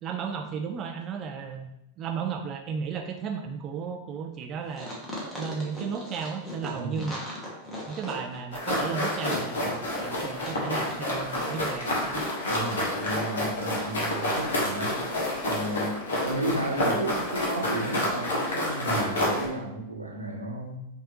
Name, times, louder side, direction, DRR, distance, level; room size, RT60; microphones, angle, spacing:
voice 1, 0.0-4.9 5.4-7.2 7.9-12.2, right 6 dB, 30° right, 4 dB, 0.3 m, -34 dB
sound 1, 4.7-10.6 10.9-11.0, left 1 dB, 10° left, 1.3 m, -39 dB
voice 2, 6.7-7.1 12.4-15.1 15.4-20.8, right 2 dB, 85° right, -2 dB, 0.8 m, -33 dB
sound 2, 8.5-19.5, left 1 dB, 65° left, 1.2 m, -29 dB
4.6 x 2.7 x 3.0 m, 0.84 s
figure-of-eight pair, 90°, 0 cm